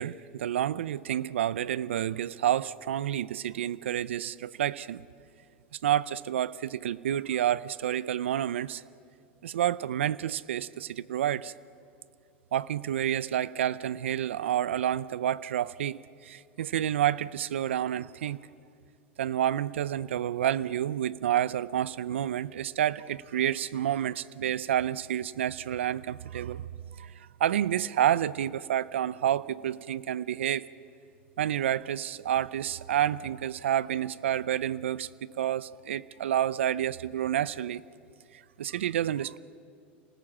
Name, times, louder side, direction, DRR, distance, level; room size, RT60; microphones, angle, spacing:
voice 1, 0.0-5.0 5.8-8.8 9.4-11.5 12.5-18.4 19.2-26.6 27.0-30.7 31.4-37.8 38.6-39.4, right 11 dB, 90° right, 20 dB, 0.5 m, -29 dB
27.0 x 19.0 x 7.4 m, 2.5 s
hypercardioid pair, 100°, 6 cm